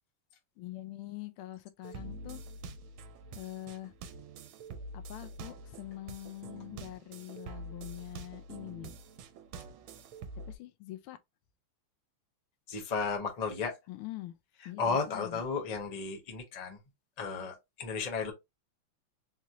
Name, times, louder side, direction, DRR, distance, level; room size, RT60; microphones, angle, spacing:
voice 1, 0.6-2.4 3.3-3.9 4.9-8.9 10.5-11.2 13.9-14.3 14.6-15.4, left 15 dB, 85° left, 1.5 m, -44 dB
sound 1, 1.8-10.6, right 2 dB, 80° right, 1.5 m, -46 dB
voice 2, 12.7-13.7 14.8-16.8 17.2-18.3, left 5 dB, 35° left, 0.6 m, -34 dB
4.2 x 2.9 x 2.5 m
omnidirectional pair, 2.3 m